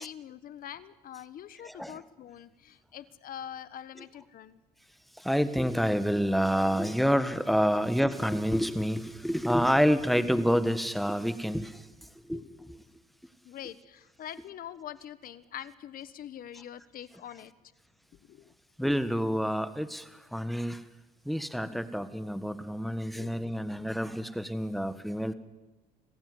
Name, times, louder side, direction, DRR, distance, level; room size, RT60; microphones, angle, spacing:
voice 1, 0.0-4.6 12.3-12.6 13.4-17.5 18.1-18.5 23.2-23.7, left 10 dB, 60° left, 15 dB, 1.3 m, -44 dB
voice 2, 1.6-2.0 5.2-11.8 12.3-12.7 18.8-20.8 21.2-25.3, equal, ahead, 11 dB, 1.5 m, -28 dB
25.0 x 16.0 x 9.7 m, 1.2 s
cardioid pair, 110°, 17 cm